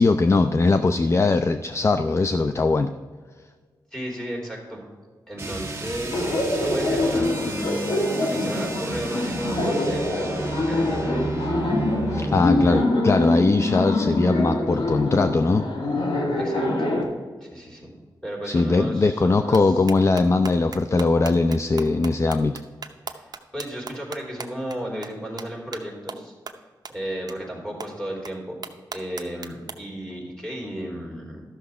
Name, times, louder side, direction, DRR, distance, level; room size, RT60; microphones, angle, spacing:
voice 1, 0.0-2.9 12.1-15.6 18.4-22.5, left 3 dB, 35° left, 9 dB, 0.4 m, -20 dB
voice 2, 3.9-4.8 5.3-11.3 16.4-16.9 17.4-17.9 18.2-19.6 23.1-26.3 26.9-28.6 28.9-31.4, equal, 10° left, -2 dB, 3.4 m, -34 dB
sound 1, 5.3-12.9, right 2 dB, 35° right, 1.6 m, -32 dB
Laughter, 6.1-17.0, left 2 dB, 80° left, 1.7 m, -25 dB
sound 2, 19.5-19.6 19.9-24.8 25.0-25.1 25.4-25.5 25.7-25.8 26.1-26.2 26.5-26.6 26.8-26.9 27.3-27.4 27.8-27.9 28.2-28.3 28.6-29.7, right 5 dB, 55° right, 0.8 m, -36 dB
12.5 x 6.5 x 4.8 m, 1.5 s
wide cardioid pair, 95°, 8 cm